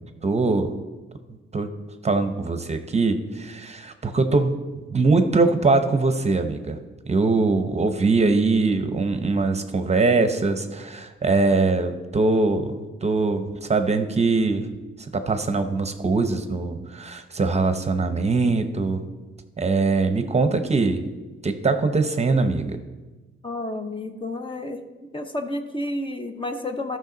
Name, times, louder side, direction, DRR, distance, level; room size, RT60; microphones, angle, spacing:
voice 1, 0.2-0.7 1.5-1.7 2.0-4.6 4.9-6.8 7.1-12.7 13.0-14.7 15.1-19.0 19.6-21.0 21.4-22.8, right 3 dB, 30° right, 8 dB, 0.8 m, -22 dB
voice 2, 23.4-24.8 25.1-27.0, left 1 dB, 25° left, 6 dB, 0.9 m, -30 dB
13.5 x 6.1 x 3.9 m, 1.2 s
cardioid pair, 90°, 21 cm